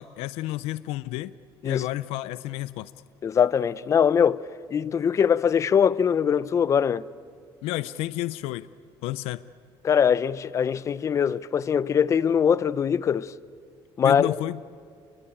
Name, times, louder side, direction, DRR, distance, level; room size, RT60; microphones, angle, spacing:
voice 1, 0.0-1.3 1.6-2.9 7.6-8.7 9.0-9.4 14.0-14.6, left 16 dB, 85° left, 0.6 m, -31 dB
voice 2, 3.2-7.1 9.8-13.3 14.0-14.4, left 7 dB, 30° left, 0.6 m, -22 dB
28.0 x 22.5 x 8.8 m
cardioid pair, 145°, 10 cm